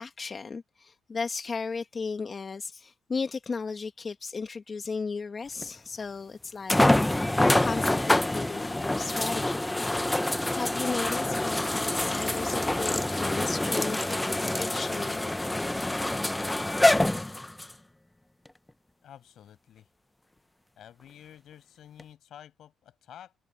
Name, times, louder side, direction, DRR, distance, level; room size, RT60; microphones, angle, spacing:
voice 1, 0.0-9.9 10.5-15.4 15.9-16.3, left 4 dB, 35° left, 1.3 m, -35 dB
sound 1, 5.6-5.7 6.7-17.7 18.5-18.6 22.0-22.1, left 1 dB, 10° left, 0.7 m, -26 dB
voice 2, 19.0-19.9 20.8-23.3, left 10 dB, 70° left, 6.3 m, -50 dB
cardioid pair, 90°, 0 cm